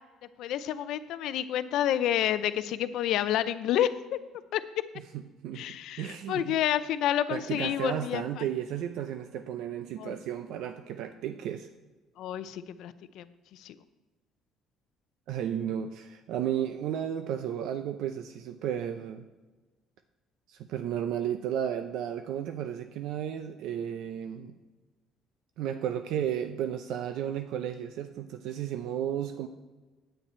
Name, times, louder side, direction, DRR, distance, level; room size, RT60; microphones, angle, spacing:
voice 1, 0.4-4.2 4.5-4.6 5.6-8.4 10.0-10.1 12.2-13.2 13.6-13.7, left 11 dB, 65° left, 13 dB, 0.5 m, -29 dB
voice 2, 4.9-5.6 6.0-6.6 7.3-11.7 15.3-19.3 20.5-24.6 25.6-29.5, right 10 dB, 70° right, 8 dB, 0.5 m, -33 dB
9.9 x 8.9 x 4.4 m, 1.2 s
cardioid pair, 150°, 0 cm